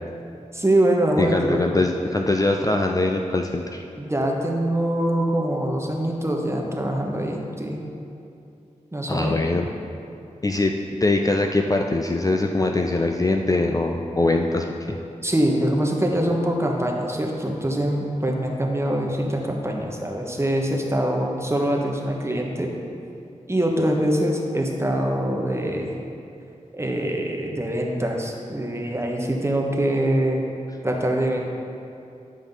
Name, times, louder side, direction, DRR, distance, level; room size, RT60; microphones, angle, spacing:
voice 1, 0.5-1.6 4.0-7.8 8.9-9.6 15.2-22.7 23.5-26.0 26.7-30.5 30.8-31.5, right 1 dB, 20° right, 0 dB, 1.1 m, -24 dB
voice 2, 1.2-3.8 9.1-9.8 10.4-10.7 11.0-15.0, left 2 dB, 25° left, 3 dB, 0.4 m, -22 dB
9.0 x 5.0 x 3.9 m, 2.6 s
cardioid pair, 45°, 13 cm